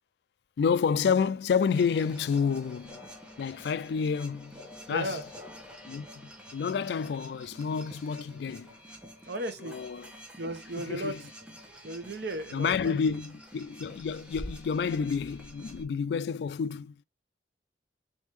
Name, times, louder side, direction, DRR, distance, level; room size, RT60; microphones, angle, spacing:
voice 1, 0.6-3.0 3.4-5.2 5.9-6.1 6.5-8.7 9.6-10.1 10.8-11.2 12.5-16.9, left 6 dB, 65° left, 0.3 m, -29 dB
sound 1, 1.7-15.8, equal, 5° right, 1.0 m, -48 dB
voice 2, 4.9-5.2 9.3-9.8 10.4-11.2 11.8-13.1, right 1 dB, 70° right, 1.1 m, -35 dB
4.1 x 3.6 x 3.0 m
head